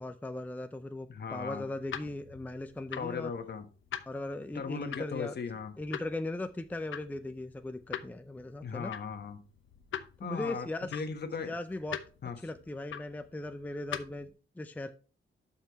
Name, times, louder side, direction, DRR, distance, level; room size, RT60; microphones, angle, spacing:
voice 1, 0.0-3.3 4.1-5.3 5.8-8.9 10.2-11.0 11.4-12.0 12.4-14.3 14.6-14.9, left 2 dB, 10° left, 9 dB, 0.5 m, -38 dB
voice 2, 1.1-1.7 3.0-3.7 4.5-5.7 8.6-9.4 10.2-11.5 12.2-12.4, left 5 dB, 55° left, 7 dB, 1.4 m, -37 dB
sound 1, 1.4-14.3, left 9 dB, 80° left, 0.8 m, -45 dB
12.0 x 5.6 x 3.1 m, 0.36 s
wide cardioid pair, 135°, 20 cm